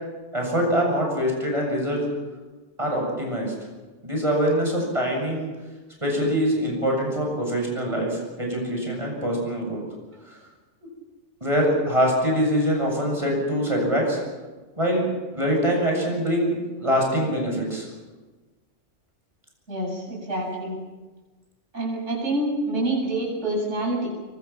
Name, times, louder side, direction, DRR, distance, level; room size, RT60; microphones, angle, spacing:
voice 1, 0.3-2.0 2.8-3.5 4.0-5.5 6.0-9.8 11.4-14.2 14.8-15.0 15.3-17.9, equal, 25° right, 0 dB, 7.7 m, -24 dB
voice 2, 19.7-20.8 21.7-24.1, right 1 dB, 70° right, -2 dB, 8.4 m, -27 dB
24.5 x 24.5 x 6.0 m, 1.3 s
omnidirectional pair, 1.3 m